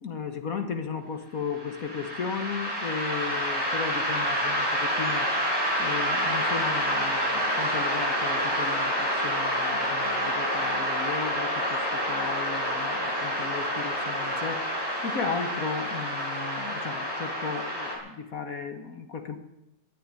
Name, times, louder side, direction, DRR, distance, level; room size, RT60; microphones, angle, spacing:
voice 1, 0.0-5.3 5.8-19.4, left 5 dB, 50° left, 7 dB, 1.6 m, -35 dB
sound 1, 1.5-18.0, equal, 10° right, 5.3 m, -28 dB
12.5 x 10.0 x 9.8 m, 0.88 s
omnidirectional pair, 2.0 m